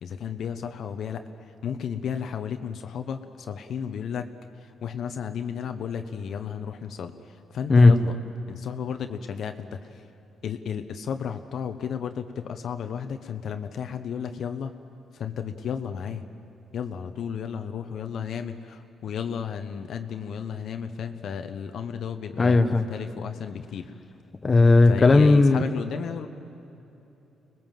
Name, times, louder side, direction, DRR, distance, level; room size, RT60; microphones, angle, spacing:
voice 1, 0.0-4.3 4.6-8.2 8.5-10.0 10.4-14.7 15.1-16.2 16.7-23.9 24.9-26.3, left 7 dB, 65° left, 7 dB, 1.0 m, -33 dB
voice 2, 22.4-22.8 24.4-25.6, left 3 dB, 30° left, 8 dB, 1.2 m, -16 dB
25.5 x 20.0 x 7.6 m, 2.9 s
cardioid pair, 90°, 0 cm